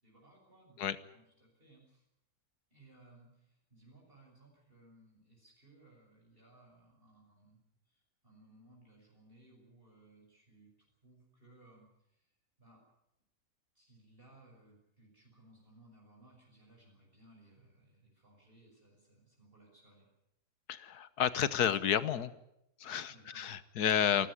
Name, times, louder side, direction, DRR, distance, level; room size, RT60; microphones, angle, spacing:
voice 1, 0.0-2.0 2.7-7.6 7.9-12.3 12.6-12.8 13.7-20.1 23.1-23.5 24.1-24.3, right 2 dB, 35° right, -1 dB, 6.4 m, -62 dB
voice 2, 20.7-22.3 22.8-24.3, left 9 dB, 85° left, 15 dB, 1.6 m, -31 dB
28.5 x 12.5 x 10.0 m, 0.83 s
omnidirectional pair, 1.6 m